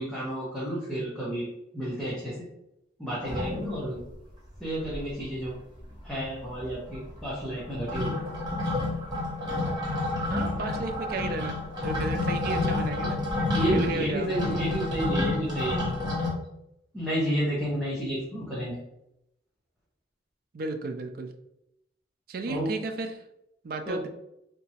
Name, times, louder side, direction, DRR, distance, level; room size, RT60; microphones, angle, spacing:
voice 1, 0.0-1.5 1.7-2.4 3.0-4.0 4.6-5.6 6.0-8.1 13.5-15.8 16.9-18.8 22.5-22.7 23.9-24.1, right 1 dB, ahead, -10 dB, 0.9 m, -31 dB
sound 1, 3.2-4.1 4.5-4.6 4.8-5.5 5.7-16.3, left 2 dB, 25° right, 0.9 m, -30 dB
voice 2, 10.3-13.2 13.6-14.3 20.5-21.3 22.3-23.2 23.6-24.1, right 3 dB, 55° right, 6 dB, 0.4 m, -33 dB
3.4 x 2.9 x 2.8 m, 0.83 s
head